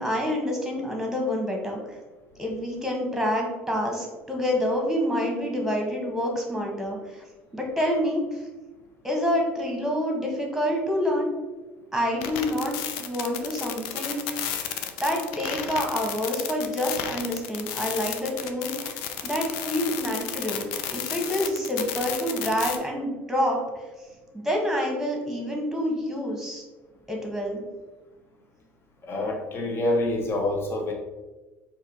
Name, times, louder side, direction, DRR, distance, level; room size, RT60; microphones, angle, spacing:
voice 1, 0.0-2.0 2.4-7.2 7.5-8.4 9.0-11.3 11.9-14.5 15.0-19.0 19.2-23.8 24.3-26.6 27.1-27.6, equal, 5° right, 1 dB, 1.4 m, -27 dB
sound 1, 12.2-22.8, left 9 dB, 65° left, 0.4 m, -32 dB
voice 2, 29.0-30.9, left 1 dB, 35° left, 0 dB, 1.1 m, -26 dB
4.5 x 2.8 x 3.8 m, 1.2 s
hypercardioid pair, 65°, 7 cm